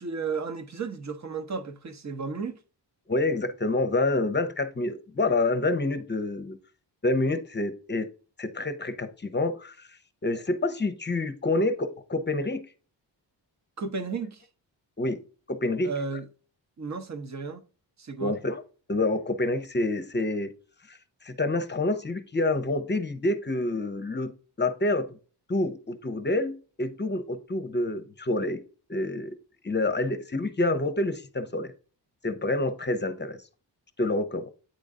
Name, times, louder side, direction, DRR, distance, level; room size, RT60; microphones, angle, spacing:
voice 1, 0.0-2.6 13.8-14.5 15.8-16.3 16.8-17.6 18.0-18.4, right 4 dB, 40° right, 1.0 m, -33 dB
voice 2, 3.1-6.6 7.0-8.1 8.4-9.7 10.2-12.7 15.0-15.2 15.5-15.9 18.2-18.6 18.9-20.5 20.9-21.0 21.2-24.3 24.6-25.2 25.5-28.6 28.9-29.4 29.6-31.7 32.2-33.4 34.0-34.5, left 2 dB, 25° left, 0.8 m, -27 dB
9.1 x 3.9 x 3.6 m
wide cardioid pair, 115°, 43 cm